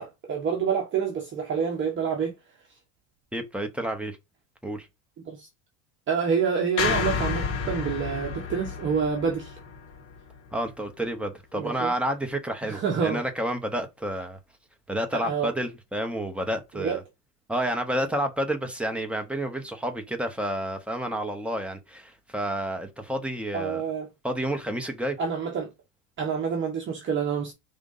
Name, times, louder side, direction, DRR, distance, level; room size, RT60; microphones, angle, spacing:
voice 1, 0.0-2.3 5.2-5.5 6.1-9.6 11.5-11.9 12.6-13.2 15.1-15.5 16.8-17.0 23.5-24.1 25.2-25.7 26.2-27.5, right 6 dB, 25° right, 1.2 m, -27 dB
voice 2, 3.3-4.2 4.6-4.9 10.5-14.4 14.9-17.0 17.5-23.8 24.2-25.2, right 1 dB, 5° right, 0.7 m, -30 dB
sound 1, 6.8-11.1, left 6 dB, 50° left, 1.8 m, -31 dB
5.0 x 3.8 x 5.3 m
cardioid pair, 150°, 46 cm